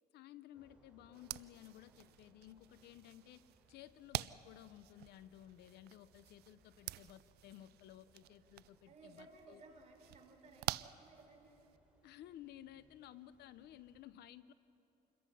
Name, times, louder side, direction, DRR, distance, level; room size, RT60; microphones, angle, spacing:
voice 1, 0.1-3.4 3.7-9.6 12.0-14.5, left 12 dB, 75° left, 15 dB, 0.7 m, -56 dB
sound 1, 0.5-14.0, equal, 5° right, 4.4 m, -72 dB
sound 2, 1.1-11.8, right 16 dB, 70° right, 0.4 m, -48 dB
voice 2, 8.9-11.6, right 3 dB, 45° right, 2 dB, 4.2 m, -59 dB
27.5 x 21.5 x 5.5 m, 2.9 s
cardioid pair, 110°, 17 cm